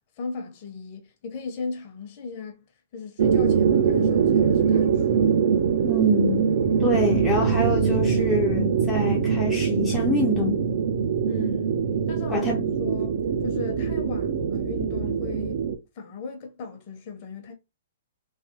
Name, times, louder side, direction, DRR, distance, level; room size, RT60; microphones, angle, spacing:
voice 1, 0.2-2.6 2.9-5.4 11.3-11.8 12.1-12.5 12.8-13.2 13.4-15.6 16.0-17.5, left 4 dB, 40° left, 0.8 m, -37 dB
sound 1, 3.2-15.8, right 6 dB, 55° right, 0.5 m, -23 dB
voice 2, 5.8-6.5 6.8-10.6 12.3-12.6, equal, 5° left, 0.5 m, -25 dB
3.2 x 2.1 x 2.9 m
hypercardioid pair, 155°, 0 cm